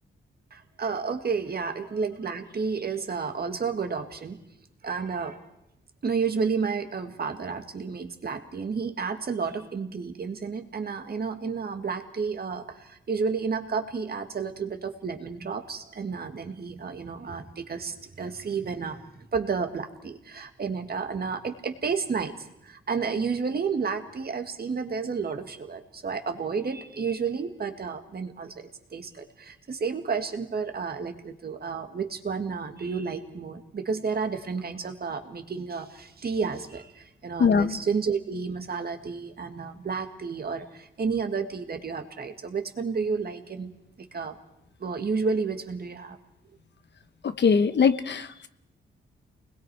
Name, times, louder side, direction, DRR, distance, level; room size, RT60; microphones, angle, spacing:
voice 1, 0.5-4.4 4.8-5.5 6.0-19.0 19.3-43.7 44.0-44.4 44.8-46.2, right 5 dB, 45° right, 6 dB, 2.0 m, -31 dB
voice 2, 37.4-37.8 47.2-48.5, left 6 dB, 55° left, 11 dB, 1.1 m, -22 dB
29.0 x 21.0 x 4.8 m, 0.81 s
cardioid pair, 100°, 21 cm